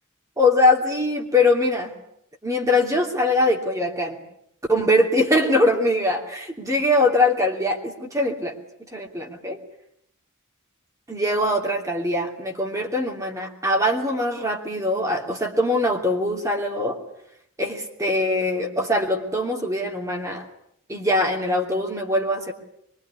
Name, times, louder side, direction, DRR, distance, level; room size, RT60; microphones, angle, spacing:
voice 1, 0.4-1.9 2.4-4.2 4.7-8.5 8.8-9.6 11.1-17.0 17.6-20.4 20.9-22.5, left 1 dB, 15° right, 2 dB, 3.0 m, -22 dB
24.5 x 23.0 x 10.0 m, 0.73 s
head